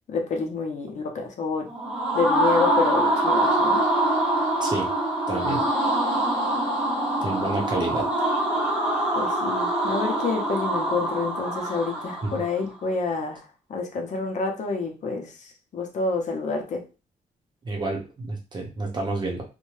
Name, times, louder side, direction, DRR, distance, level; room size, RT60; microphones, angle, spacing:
voice 1, 0.1-1.7 2.1-3.9 9.1-13.4 13.7-16.8, left 4 dB, 60° left, 2 dB, 0.6 m, -28 dB
sound 1, 1.7-12.5, right 1 dB, 5° right, 1.1 m, -24 dB
voice 2, 5.3-5.6 7.2-8.1 12.2-12.4 17.6-19.4, right 2 dB, 30° right, 0 dB, 0.8 m, -29 dB
2.6 x 2.2 x 3.1 m, 0.31 s
wide cardioid pair, 145°, 14 cm